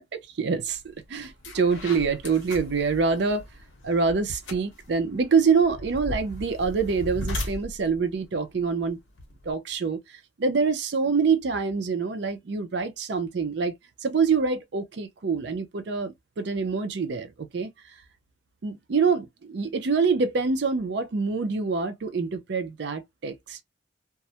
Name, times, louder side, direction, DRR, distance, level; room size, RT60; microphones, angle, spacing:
voice 1, 0.0-3.4 3.8-9.0 9.4-13.7 14.0-17.7 18.6-23.6, right 5 dB, 55° right, 0.4 m, -26 dB
sound 1, 0.7-0.9 1.2-9.5, left 1 dB, 60° left, 0.8 m, -38 dB
2.2 x 2.0 x 2.7 m
head